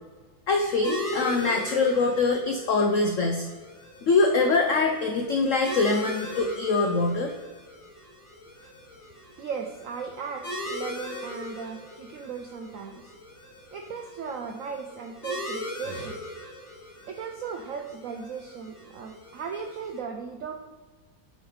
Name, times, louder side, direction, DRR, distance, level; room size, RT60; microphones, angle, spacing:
voice 1, 0.5-3.4 4.0-7.3, left 3 dB, 90° left, 3 dB, 0.7 m, -23 dB
sound 1, 0.8-20.0, left 1 dB, 35° left, 2.5 m, -39 dB
voice 2, 9.0-13.1 13.7-16.3 16.7-20.6, right 6 dB, 80° right, 3 dB, 0.7 m, -37 dB
7.8 x 3.3 x 4.7 m, 1.3 s
omnidirectional pair, 2.1 m